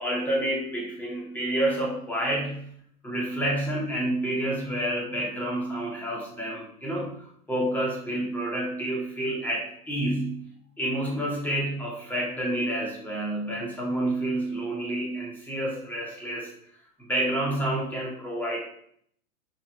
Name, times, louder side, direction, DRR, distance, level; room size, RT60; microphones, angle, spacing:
voice 1, 0.0-2.7 3.0-10.4 10.8-16.5 17.0-18.6, right 1 dB, 5° left, -4 dB, 2.1 m, -29 dB
12.0 x 4.4 x 3.3 m, 0.66 s
figure-of-eight pair, 110°, 45 cm